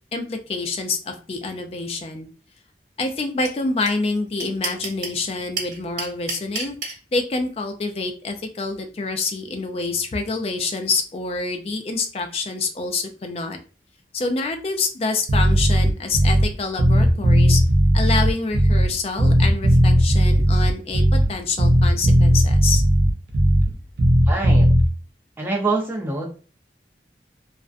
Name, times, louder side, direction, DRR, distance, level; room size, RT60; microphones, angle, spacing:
voice 1, 0.1-2.3 3.0-6.8 7.1-13.6 14.1-17.6 17.9-22.8, left 3 dB, 35° left, 5 dB, 0.3 m, -27 dB
sound 1, 3.4-3.5 3.9-4.0 4.1-5.2 5.6-6.9, right 4 dB, 45° right, 1.2 m, -28 dB
Bass guitar, 15.3-16.5 16.8-18.9 19.2-21.3 21.6-23.7 24.0-24.9, equal, 60° right, 0.4 m, -16 dB
voice 2, 24.3-24.7 25.4-26.3, right 3 dB, 15° right, -2 dB, 0.6 m, -25 dB
2.4 x 2.1 x 2.4 m, 0.37 s
head